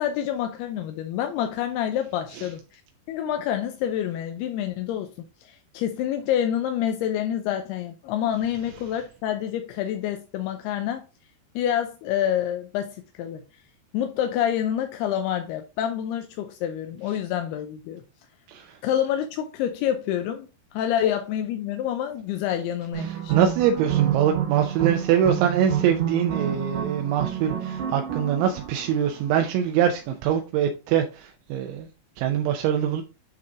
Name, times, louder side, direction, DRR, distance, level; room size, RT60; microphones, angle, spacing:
voice 1, 0.0-2.8 3.1-11.0 11.6-13.4 13.9-18.0 18.8-23.5, left 10 dB, 80° left, 2.3 m, -27 dB
voice 2, 18.5-18.8 23.0-31.9 32.2-33.0, right 9 dB, 85° right, 3.1 m, -24 dB
sound 1, 22.9-29.5, right 10 dB, 65° right, 3.9 m, -29 dB
9.4 x 3.6 x 3.7 m
omnidirectional pair, 5.3 m